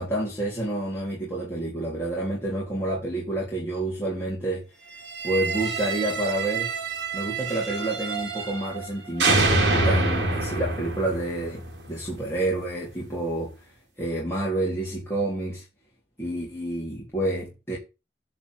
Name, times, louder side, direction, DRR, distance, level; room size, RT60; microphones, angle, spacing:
voice 1, 0.0-4.7 5.2-6.7 7.1-11.6 11.9-13.5 14.0-15.6 16.2-17.8, right 1 dB, 15° left, 3.7 m, -29 dB
sound 1, 5.0-8.9 9.2-12.2, right 3 dB, 90° right, 3.5 m, -26 dB
11.0 x 4.6 x 8.0 m
head